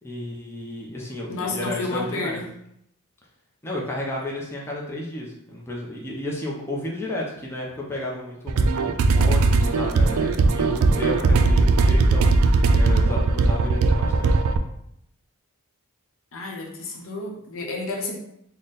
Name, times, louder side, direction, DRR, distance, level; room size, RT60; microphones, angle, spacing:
voice 1, 0.0-2.4 3.6-8.8 9.1-14.4, left 1 dB, 10° left, -4 dB, 0.5 m, -32 dB
voice 2, 1.3-2.5 16.3-18.2, left 3 dB, 65° left, 0 dB, 0.8 m, -31 dB
sound 1, 8.5-14.6, right 3 dB, 65° right, 0.3 m, -19 dB
3.9 x 2.1 x 3.9 m, 0.75 s
head